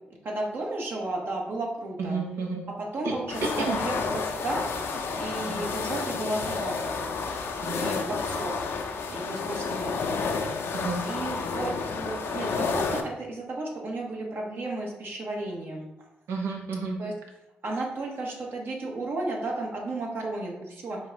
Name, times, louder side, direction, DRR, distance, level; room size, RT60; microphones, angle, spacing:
voice 1, 0.2-2.2 2.8-4.6 4.9-7.0 7.8-8.5 9.1-10.3 11.0-15.9 17.0-17.1 17.6-21.0, right 2 dB, 60° right, -1 dB, 1.2 m, -33 dB
voice 2, 2.0-2.7 3.0-3.1 3.4-3.8 5.5-5.7 7.6-7.9 10.8-11.1 16.3-17.0, right 4 dB, 80° right, 1 dB, 0.8 m, -31 dB
sound 1, 3.3-13.0, left 4 dB, 70° left, 0.5 m, -30 dB
4.9 x 2.3 x 4.0 m, 0.93 s
supercardioid pair, 55°, 4 cm